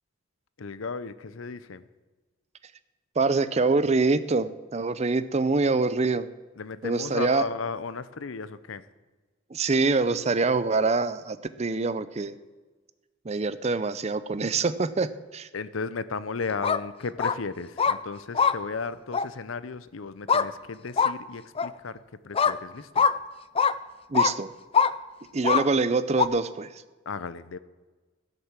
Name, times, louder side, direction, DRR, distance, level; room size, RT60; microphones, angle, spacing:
voice 1, 0.6-1.8 6.6-8.8 15.5-22.0 22.2-23.1 27.1-27.6, left 4 dB, 85° left, 15 dB, 0.7 m, -35 dB
voice 2, 3.2-6.3 6.8-7.4 9.5-12.4 13.2-15.5 24.1-24.5 25.3-26.7, right 3 dB, 35° right, 14 dB, 0.5 m, -25 dB
sound 1, 16.5-16.8 17.2-17.4 17.8-18.0 18.3-18.5 19.1-19.3 20.3-20.5 21.0-21.1 21.6-21.7 22.3-22.6 23.0-23.1 23.6-23.7 24.1-24.3 24.7-24.9 25.4-25.6 26.2-26.3, left 6 dB, 30° left, 0.4 m, -22 dB
16.0 x 6.7 x 7.4 m, 1.3 s
head